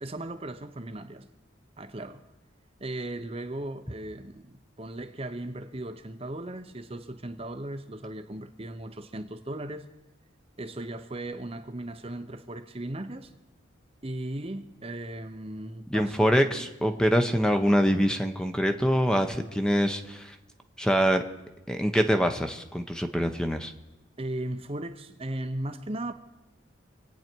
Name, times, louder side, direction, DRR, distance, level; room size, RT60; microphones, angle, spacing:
voice 1, 0.0-1.3 1.8-2.2 2.8-9.8 10.6-13.3 14.0-16.3 24.2-26.1, right 1 dB, 30° right, 0.7 m, -37 dB
voice 2, 15.9-20.4 20.8-21.2 21.7-23.7, equal, 5° left, 0.8 m, -24 dB
26.5 x 9.3 x 4.5 m
head